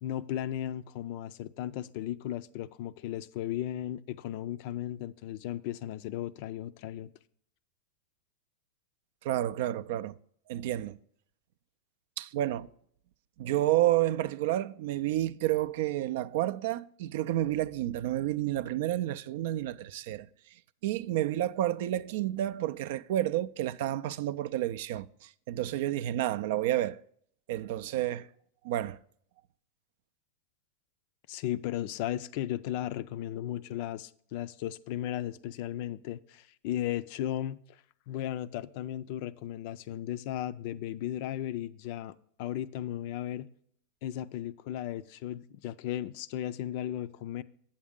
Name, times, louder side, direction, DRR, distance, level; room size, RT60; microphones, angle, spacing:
voice 1, 0.0-7.1 31.3-37.8 38.1-43.5 44.0-47.4, left 12 dB, 55° left, 0.4 m, -36 dB
voice 2, 9.2-10.2 10.5-11.0 12.2-12.7 13.4-20.3 20.8-27.0 27.5-28.3 28.6-29.0, right 14 dB, 65° right, 0.3 m, -30 dB
8.5 x 7.2 x 3.6 m
hypercardioid pair, 110°, 0 cm